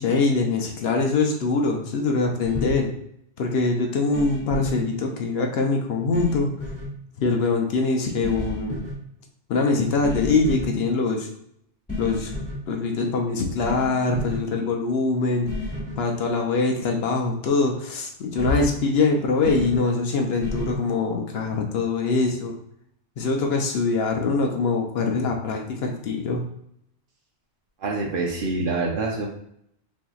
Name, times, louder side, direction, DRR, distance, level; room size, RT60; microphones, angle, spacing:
voice 1, 0.0-2.9 3.4-6.5 7.2-8.8 9.5-11.3 12.0-12.3 12.7-15.5 16.0-22.5 23.2-26.4, left 3 dB, 70° left, 2 dB, 0.8 m, -23 dB
sound 1, 2.4-2.8 4.1-4.7 6.1-6.9 8.2-8.9 10.0-10.7 11.9-12.6 13.6-13.9 14.1-14.4 15.5-15.9 18.4-18.7 19.4-19.8 20.4-20.7, left 2 dB, 5° left, 1.3 m, -31 dB
voice 2, 27.8-29.3, right 3 dB, 55° right, -1 dB, 0.8 m, -26 dB
4.3 x 2.6 x 2.3 m, 0.72 s
omnidirectional pair, 1.2 m